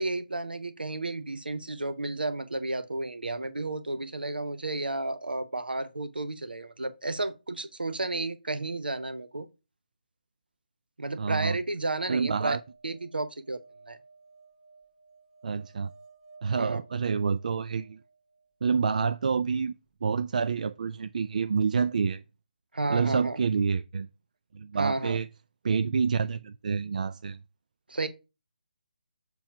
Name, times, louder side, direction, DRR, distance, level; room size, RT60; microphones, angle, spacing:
voice 1, 0.0-9.5 11.0-12.6 12.8-14.0 16.6-16.8 22.7-23.4 24.8-25.2 27.9-28.1, right 2 dB, 85° right, 0.7 m, -32 dB
voice 2, 11.2-11.6 12.1-12.6 15.4-15.9 16.4-18.0 18.6-19.7 20.0-22.2 22.9-24.1 24.5-25.3 25.6-27.4, right 5 dB, 55° right, 0.3 m, -28 dB
sound 1, 12.3-18.5 20.8-20.9 21.1-21.2, right 4 dB, 10° right, 0.8 m, -57 dB
6.9 x 3.1 x 5.5 m
figure-of-eight pair, 150°, 5 cm